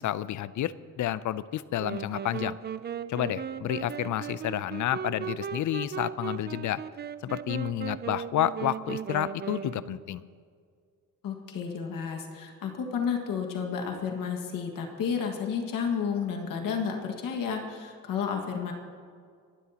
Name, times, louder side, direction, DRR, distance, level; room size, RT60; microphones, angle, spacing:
voice 1, 0.0-2.6 3.1-6.8 7.2-10.2, left 12 dB, 65° left, 17 dB, 0.5 m, -30 dB
sound 1, 1.8-10.2, right 8 dB, 30° right, 0.4 m, -37 dB
voice 2, 11.2-18.7, left 6 dB, 85° left, 3 dB, 1.8 m, -31 dB
26.5 x 12.0 x 2.9 m, 2.1 s
cardioid pair, 120°, 33 cm